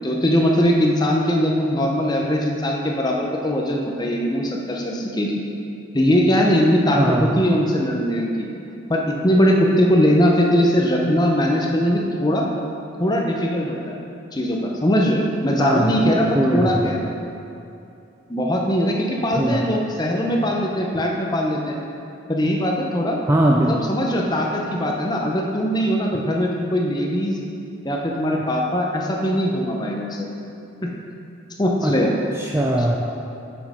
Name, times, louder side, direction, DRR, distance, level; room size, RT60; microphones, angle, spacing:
voice 1, 0.0-5.4 5.9-8.5 8.9-12.5 13.0-14.0 14.3-16.3 16.5-17.1 18.3-21.8 22.3-23.2 23.7-27.4 27.8-30.3 30.8-30.9 31.6-32.1, equal, 20° left, -1 dB, 0.7 m, -20 dB
voice 2, 7.0-7.3 15.6-17.0 19.4-19.6 23.3-23.7 31.8-31.9 32.4-33.0, right 1 dB, 10° right, -1 dB, 0.3 m, -20 dB
6.4 x 6.3 x 4.9 m, 2.7 s
head